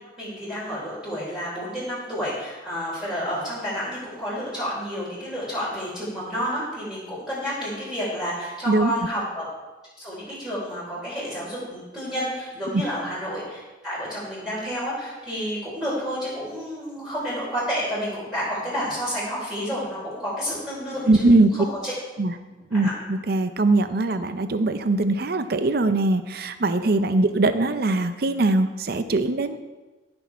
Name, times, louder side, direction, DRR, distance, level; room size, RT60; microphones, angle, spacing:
voice 1, 0.2-9.5 10.0-21.9 22.7-22.9, equal, 5° right, -10 dB, 3.6 m, -30 dB
voice 2, 21.1-21.5 22.2-22.3 22.7-29.6, right 2 dB, 55° right, 10 dB, 0.6 m, -21 dB
13.5 x 6.2 x 4.6 m, 1.2 s
head